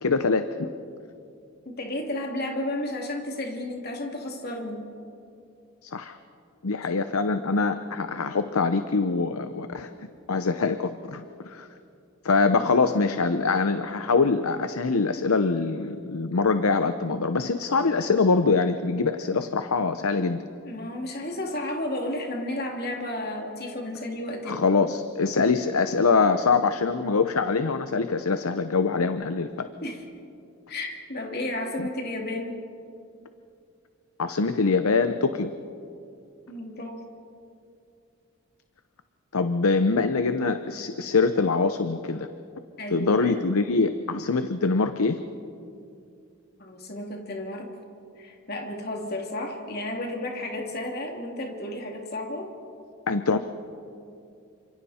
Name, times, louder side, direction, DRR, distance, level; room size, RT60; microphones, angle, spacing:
voice 1, 0.0-0.7 5.8-6.2 6.6-9.9 10.3-11.7 12.2-20.4 24.5-29.7 31.8-31.9 34.2-35.5 39.3-42.3 42.9-45.2 53.1-53.4, left 4 dB, 80° left, 9 dB, 0.8 m, -24 dB
voice 2, 1.6-5.0 20.6-24.6 29.8-30.0 30.7-32.5 36.5-37.0 42.8-43.4 46.6-47.7 48.2-52.5, left 1 dB, 45° left, 1 dB, 2.9 m, -32 dB
29.0 x 26.5 x 4.4 m, 2.5 s
head